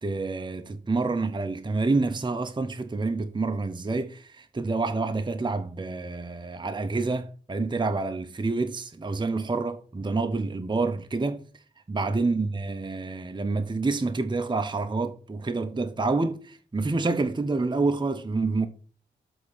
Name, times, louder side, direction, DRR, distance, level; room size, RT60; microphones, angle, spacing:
voice 1, 0.0-11.4 11.9-18.7, right 3 dB, 25° right, 0.7 m, -28 dB
7.5 x 3.6 x 6.3 m
cardioid pair, 45°, 20 cm